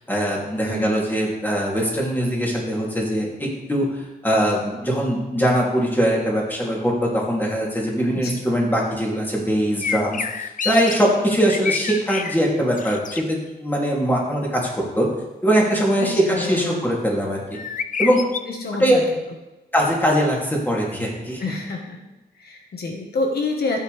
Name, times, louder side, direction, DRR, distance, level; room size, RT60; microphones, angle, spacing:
voice 1, 0.1-14.6 14.9-15.1 15.4-17.4 18.0-18.3 18.8-19.0 19.7-21.4, equal, 10° left, -3 dB, 2.9 m, -21 dB
sound 1, 9.8-10.9 11.3-12.4 12.7-13.2 17.5-18.4, left 6 dB, 50° left, 0.6 m, -27 dB
voice 2, 16.0-16.8 18.5-19.0 21.4-22.0 22.4-23.8, left 3 dB, 70° left, 2 dB, 1.4 m, -28 dB
14.5 x 8.7 x 3.4 m, 1.0 s
wide cardioid pair, 145°, 17 cm